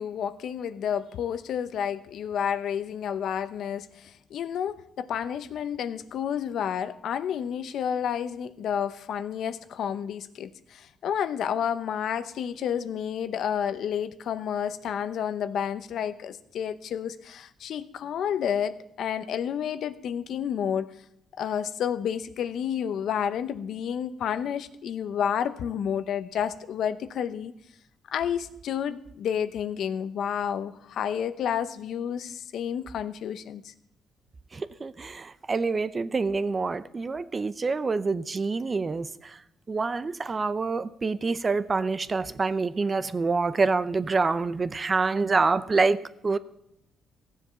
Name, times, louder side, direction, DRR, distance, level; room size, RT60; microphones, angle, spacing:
voice 1, 0.0-20.9 21.4-27.5 28.1-33.7, left 8 dB, 70° left, 0.8 m, -30 dB
voice 2, 34.5-39.1 39.7-46.0 46.2-46.4, right 4 dB, 30° right, 0.6 m, -26 dB
15.0 x 7.5 x 6.9 m
cardioid pair, 90°, 0 cm